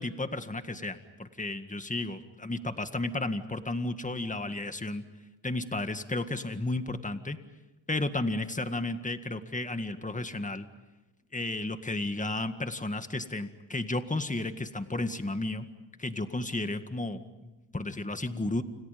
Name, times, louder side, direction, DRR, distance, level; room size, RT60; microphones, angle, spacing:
voice 1, 0.0-5.0 5.4-7.4 7.9-10.7 11.3-15.7 16.0-18.6, left 2 dB, 15° left, 8 dB, 1.9 m, -33 dB
29.5 x 28.0 x 5.3 m, 1.1 s
cardioid pair, 85°, 47 cm